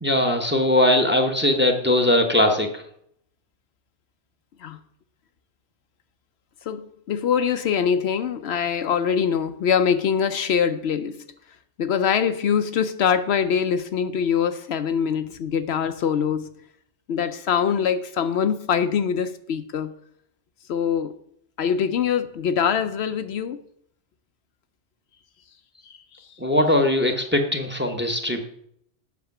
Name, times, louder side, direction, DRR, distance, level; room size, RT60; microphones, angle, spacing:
voice 1, 0.0-2.8 26.4-28.5, left 1 dB, 10° right, 1.0 m, -20 dB
voice 2, 6.7-11.2 11.8-16.5 17.1-19.9 20.7-21.2 21.6-23.6 25.9-26.0, left 7 dB, 70° left, 0.9 m, -23 dB
8.3 x 6.3 x 5.9 m
omnidirectional pair, 1.2 m